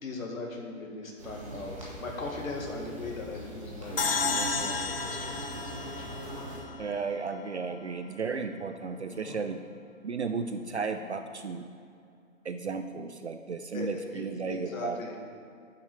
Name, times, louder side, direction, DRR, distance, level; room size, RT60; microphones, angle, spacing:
voice 1, 0.0-6.1 9.1-9.4 13.7-15.1, left 3 dB, 75° left, 0 dB, 2.1 m, -39 dB
sound 1, 1.2-6.6, right 1 dB, 25° right, 1.6 m, -41 dB
sound 2, 4.0-7.3, left 4 dB, 45° left, 0.6 m, -32 dB
voice 2, 6.8-9.6 10.0-11.7 12.4-15.2, right 5 dB, 55° right, 8 dB, 0.5 m, -34 dB
8.7 x 7.6 x 4.8 m, 2.4 s
hypercardioid pair, 180°, 41 cm